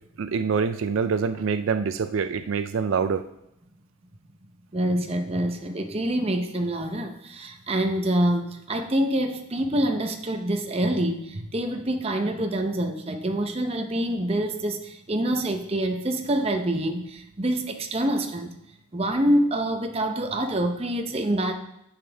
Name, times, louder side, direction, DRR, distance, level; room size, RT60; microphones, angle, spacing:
voice 1, 0.2-3.2, right 5 dB, 75° right, 10 dB, 0.4 m, -25 dB
voice 2, 4.7-18.5 18.9-21.5, right 1 dB, 30° right, 5 dB, 0.8 m, -26 dB
9.6 x 7.2 x 3.4 m, 0.82 s
head